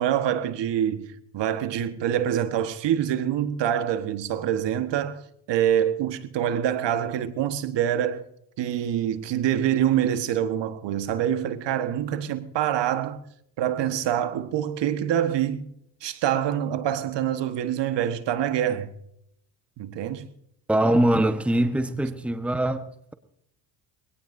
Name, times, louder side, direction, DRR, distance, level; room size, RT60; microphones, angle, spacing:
voice 1, 0.0-5.2 5.5-8.2 8.6-13.2 13.6-15.7 16.0-18.9 19.8-20.2, right 10 dB, 60° right, 1.4 m, -25 dB
voice 2, 20.7-23.1, right 1 dB, ahead, 1.1 m, -23 dB
23.5 x 17.5 x 2.7 m
supercardioid pair, 80°, 49 cm